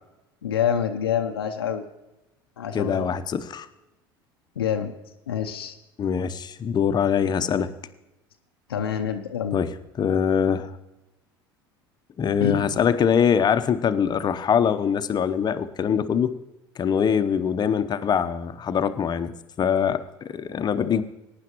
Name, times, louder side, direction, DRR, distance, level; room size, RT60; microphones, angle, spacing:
voice 1, 0.4-1.8 2.6-3.1 4.6-4.9 5.3-5.8 8.7-9.6 12.4-12.6, left 8 dB, 85° left, 4 dB, 0.7 m, -26 dB
voice 2, 2.7-3.7 6.0-7.7 9.5-9.7 10.0-10.7 12.2-16.3 16.8-19.3 19.6-21.0, left 7 dB, 35° left, 11 dB, 0.8 m, -23 dB
18.0 x 9.7 x 3.0 m, 0.96 s
hypercardioid pair, 70°, 12 cm